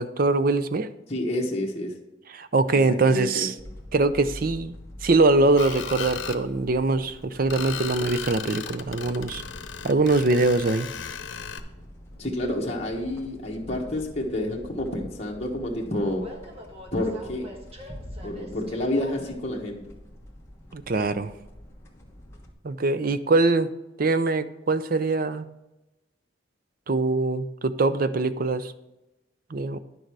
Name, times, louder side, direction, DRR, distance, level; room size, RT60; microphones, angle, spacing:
voice 1, 0.0-0.9 2.3-3.5 3.9-4.7 5.0-9.4 9.8-10.9 20.7-21.3 22.6-23.7 24.0-25.4 26.9-28.7 29.5-29.8, right 3 dB, 45° right, 13 dB, 0.5 m, -23 dB
voice 2, 1.1-1.9 2.9-3.5 12.2-16.2 16.9-17.5 18.2-19.8, left 1 dB, 35° left, -2 dB, 1.4 m, -29 dB
sound 1, 3.6-22.5, left 1 dB, 15° left, 1.2 m, -45 dB
Screech, 5.6-6.4 7.5-11.6, left 7 dB, 80° left, 0.8 m, -36 dB
Train, 11.5-19.4, equal, 30° right, 1.4 m, -50 dB
10.5 x 6.6 x 4.7 m, 0.99 s
head